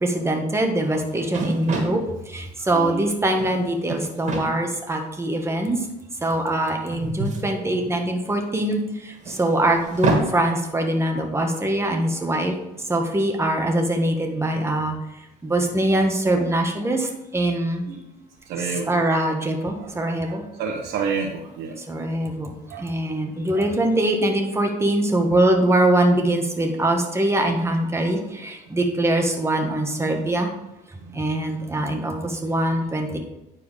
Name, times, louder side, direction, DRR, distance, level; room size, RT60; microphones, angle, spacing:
voice 1, 0.0-5.8 6.2-12.6 12.9-14.9 15.4-17.1 17.3-17.8 18.9-20.4 21.9-30.5 31.1-33.2, right 1 dB, 15° right, 2 dB, 1.5 m, -23 dB
sound 1, 0.8-0.9 1.1-2.0 3.1-3.6 3.9-4.5 5.4-5.5 6.9-8.2 9.2-10.3, right 3 dB, 45° right, 2.3 m, -26 dB
voice 2, 2.7-3.1 11.6-11.7 12.1-12.3 17.9-18.0 18.5-18.9 19.8-19.9 20.3-21.8 22.7-22.9 23.5-23.7 31.0-31.2, right 5 dB, 85° right, -1 dB, 1.1 m, -30 dB
9.7 x 4.6 x 5.2 m, 0.93 s
cardioid pair, 110°, 17 cm